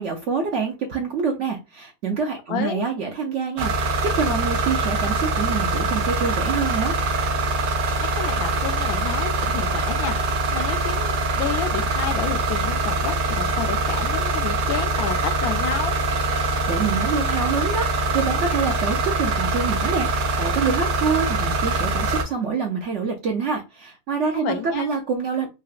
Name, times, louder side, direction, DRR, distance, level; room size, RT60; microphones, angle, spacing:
voice 1, 0.0-7.0 16.4-25.5, right 5 dB, 65° right, 0.7 m, -26 dB
voice 2, 2.5-2.8 8.0-15.9 24.3-24.9, left 8 dB, 70° left, 1.0 m, -30 dB
sound 1, 3.6-22.2, right 2 dB, 90° right, 1.3 m, -23 dB
3.9 x 2.1 x 2.4 m
omnidirectional pair, 1.8 m